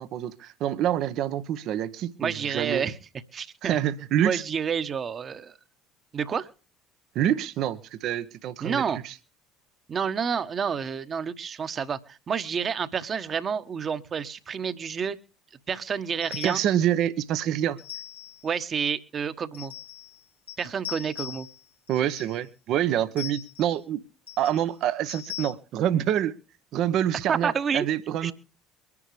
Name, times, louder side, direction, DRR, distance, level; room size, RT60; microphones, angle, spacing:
voice 1, 0.0-2.8 3.6-4.4 7.1-9.1 16.4-17.8 21.9-24.0 24.4-26.3 26.7-28.3, right 11 dB, 55° right, 1.0 m, -26 dB
voice 2, 2.2-2.9 3.3-3.8 4.2-5.5 6.1-6.5 8.6-9.0 9.9-15.2 15.7-16.6 18.4-19.7 20.6-21.5 27.3-27.9 28.2-28.3, right 6 dB, 40° right, 1.3 m, -29 dB
sound 1, 16.2-16.8 17.8-18.4 19.5-20.2 20.5-21.6 21.9-22.4 23.2-23.8 24.3-24.6 25.1-25.5, left 13 dB, 90° left, 1.7 m, -40 dB
23.5 x 11.0 x 3.2 m
hypercardioid pair, 65°, 0 cm